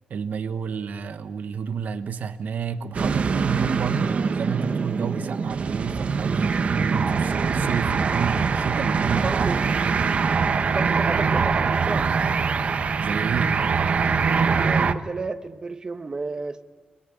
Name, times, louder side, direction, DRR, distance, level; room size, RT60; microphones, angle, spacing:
voice 1, 0.1-9.5 13.0-13.5, right 6 dB, 80° right, 10 dB, 1.1 m, -30 dB
sound 1, 2.9-14.9, right 5 dB, 50° right, 1.0 m, -23 dB
voice 2, 9.2-9.6 10.7-12.1 14.5-16.6, right 3 dB, 30° right, 9 dB, 1.2 m, -32 dB
29.5 x 21.0 x 8.8 m, 1.2 s
wide cardioid pair, 175°, 3 cm